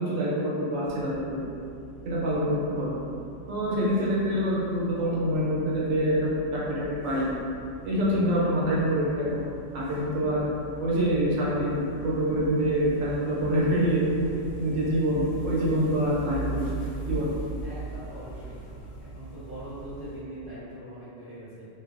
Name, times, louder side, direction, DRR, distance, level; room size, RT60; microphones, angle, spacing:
voice 1, 0.0-1.3 2.0-2.9 3.5-7.3 7.8-9.5 9.7-10.5 10.8-14.0 14.6-16.7 17.1-17.3, equal, 85° right, -7 dB, 1.1 m, -26 dB
sound 1, 0.8-20.2, right 3 dB, 80° left, 1.0 m, -41 dB
voice 2, 17.6-18.6 19.0-21.7, right 1 dB, 25° left, -15 dB, 1.0 m, -42 dB
2.5 x 2.2 x 2.4 m, 2.5 s
omnidirectional pair, 1.3 m